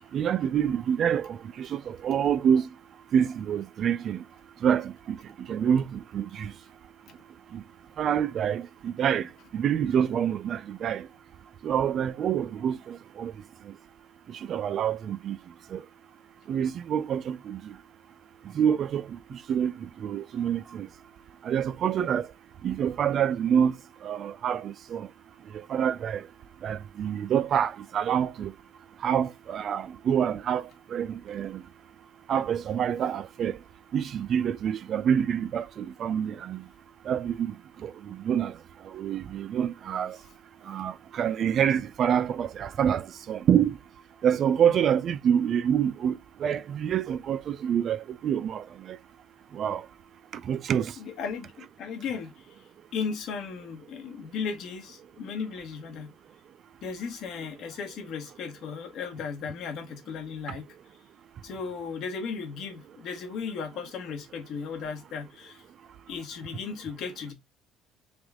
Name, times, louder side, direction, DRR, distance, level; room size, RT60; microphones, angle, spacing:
voice 1, 0.1-2.7 3.1-4.2 4.6-6.5 7.5-7.6 8.0-11.1 11.6-13.3 13.6-13.7 14.3-15.4 15.7-15.8 16.5-17.8 18.5-20.9 21.4-22.3 22.6-23.8 24.0-25.1 25.5-26.3 26.6-28.5 29.0-31.6 32.3-33.6 33.9-36.7 37.0-38.6 38.8-40.2 40.7-43.8 44.2-49.0 49.5-49.9 50.3-51.0, right 8 dB, 40° right, 0.3 m, -27 dB
voice 2, 51.0-56.1 56.8-60.7 61.4-65.6 66.1-67.3, left 5 dB, 55° left, 1.2 m, -36 dB
3.5 x 3.0 x 3.5 m
cardioid pair, 155°, 0 cm